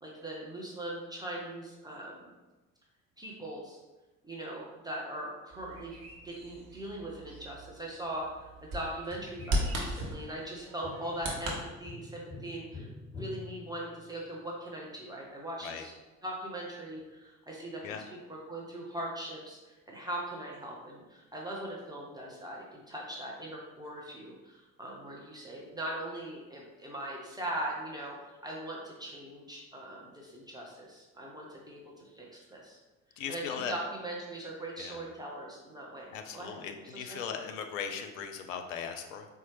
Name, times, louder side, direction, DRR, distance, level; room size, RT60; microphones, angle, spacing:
voice 1, 0.0-2.3 3.2-3.8 4.2-12.9 13.1-15.9 16.2-18.0 18.3-32.8 33.3-36.6 36.9-37.2, right 1 dB, 10° right, -3 dB, 0.6 m, -40 dB
Bird vocalization bird call bird song, 5.5-11.6, equal, 50° right, 0.9 m, -38 dB
Tap, 9.1-14.4 17.0-17.1, left 2 dB, 15° left, 1.3 m, -48 dB
voice 2, 33.2-33.7 34.8-35.0 36.1-39.3, left 7 dB, 65° left, 6 dB, 0.5 m, -38 dB
4.1 x 2.2 x 3.0 m, 1.1 s
figure-of-eight pair, 55°, 42 cm